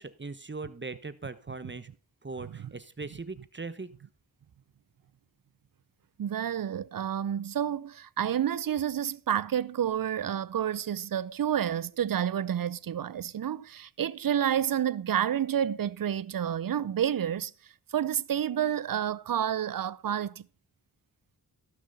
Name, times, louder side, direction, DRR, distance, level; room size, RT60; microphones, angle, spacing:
voice 1, 0.0-1.9 2.2-3.9, right 3 dB, 30° right, 1.1 m, -40 dB
voice 2, 6.2-17.5 17.9-20.5, right 9 dB, 60° right, 0.7 m, -29 dB
16.5 x 6.1 x 4.1 m
cardioid pair, 50°, 39 cm